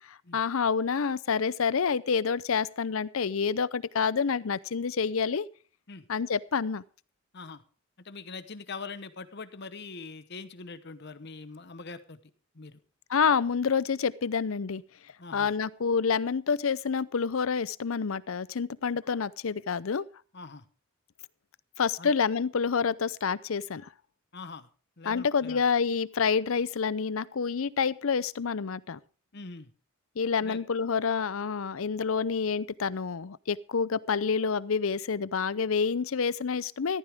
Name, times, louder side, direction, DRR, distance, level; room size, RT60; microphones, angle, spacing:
voice 1, 0.1-5.5 6.1-6.8 13.1-14.8 15.3-20.1 21.8-23.9 25.1-29.0 30.2-37.0, left 5 dB, 70° left, 19 dB, 0.6 m, -28 dB
voice 2, 8.0-12.2 12.5-12.8 15.2-15.5 20.3-20.7 22.0-22.1 24.3-24.7 25.0-25.7 29.3-29.7 30.4-30.6, left 4 dB, 50° left, 13 dB, 1.1 m, -43 dB
15.0 x 13.5 x 3.5 m, 0.36 s
head